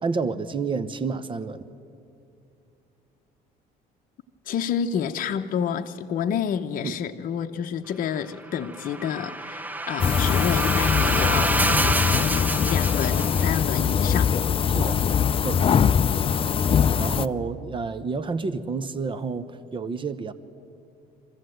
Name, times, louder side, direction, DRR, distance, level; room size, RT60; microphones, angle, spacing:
voice 1, 0.0-1.7 6.8-6.9 14.7-15.0 15.4-15.7 17.0-20.3, right 4 dB, 30° right, 13 dB, 0.9 m, -29 dB
voice 2, 4.5-11.6 12.1-14.3, left 8 dB, 55° left, 5 dB, 0.8 m, -29 dB
sound 1, 8.5-13.8, right 2 dB, 10° right, 0.6 m, -27 dB
sound 2, 10.0-17.2, left 7 dB, 35° left, 0.4 m, -22 dB
24.0 x 14.5 x 7.9 m, 2.6 s
cardioid pair, 110°, 17 cm